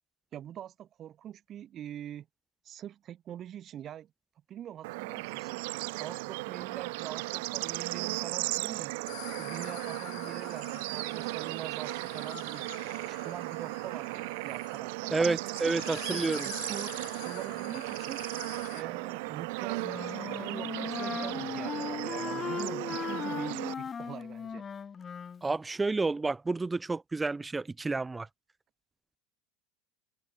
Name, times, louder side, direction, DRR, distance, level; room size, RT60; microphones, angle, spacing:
voice 1, 0.3-2.3 2.6-4.1 4.5-5.6 6.0-8.9 9.4-12.6 13.1-15.4 15.9-18.3 18.7-24.7, right 11 dB, 35° right, 3.7 m, -44 dB
Bird / Insect / Frog, 4.8-23.7, right 25 dB, 75° right, 2.2 m, -36 dB
sound 1, 9.1-18.8, left 31 dB, 65° left, 2.5 m, -47 dB
voice 2, 15.1-16.5 25.4-28.3, right 3 dB, 10° right, 0.6 m, -30 dB
Wind instrument woodwind instrument, 19.8-25.4, left 6 dB, 25° left, 1.6 m, -37 dB
open air
supercardioid pair, 130°, 0 cm